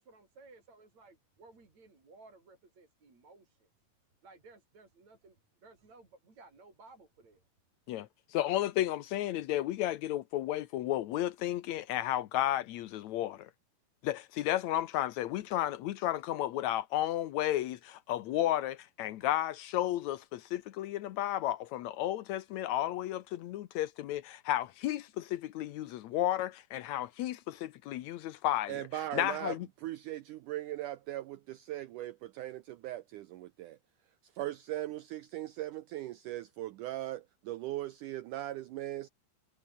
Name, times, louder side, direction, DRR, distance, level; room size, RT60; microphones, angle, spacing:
voice 1, 0.0-3.7 4.2-7.5, right 3 dB, 45° right, 7.6 m, -58 dB
voice 2, 7.9-13.5 14.0-28.8 29.1-29.7, left 13 dB, 85° left, 1.6 m, -33 dB
voice 3, 28.7-29.6 29.8-33.8 34.2-39.1, right 14 dB, 80° right, 1.9 m, -39 dB
omnidirectional pair, 4.4 m